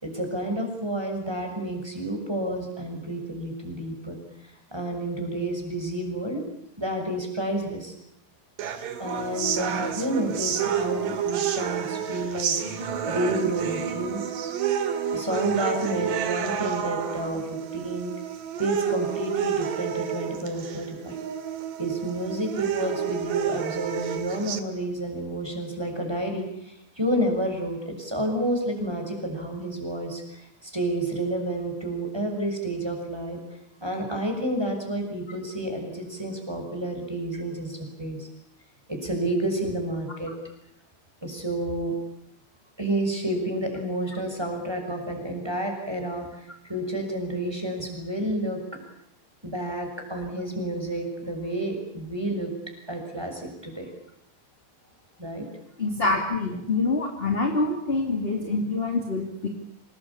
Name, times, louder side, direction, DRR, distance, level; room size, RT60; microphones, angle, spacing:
voice 1, 0.0-4.2 4.7-6.4 6.8-7.9 9.0-14.2 15.1-18.1 18.6-21.2 21.8-33.4 33.8-38.3 38.9-40.3 41.2-41.9 42.8-48.6 49.4-52.5 52.9-53.9 55.2-55.5, right 1 dB, 5° right, 3 dB, 6.2 m, -30 dB
sound 1, 8.6-24.6, right 8 dB, 60° right, 3.4 m, -29 dB
voice 2, 55.8-59.5, left 3 dB, 15° left, 3 dB, 2.4 m, -26 dB
27.0 x 20.5 x 8.7 m, 0.77 s
omnidirectional pair, 4.6 m